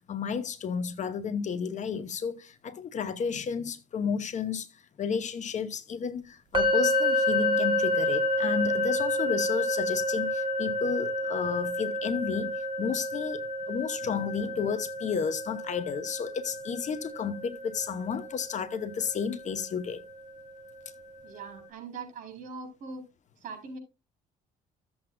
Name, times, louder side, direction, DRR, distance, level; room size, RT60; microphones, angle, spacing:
voice 1, 0.0-4.7 5.0-12.5 12.8-13.4 13.7-20.0, left 6 dB, 45° left, 0.9 m, -32 dB
sound 1, 6.5-20.4, left 1 dB, 30° right, 1.8 m, -30 dB
voice 2, 21.2-23.0 23.4-23.8, right 4 dB, 50° right, 4.7 m, -41 dB
14.0 x 7.9 x 2.3 m
cardioid pair, 110°, 17 cm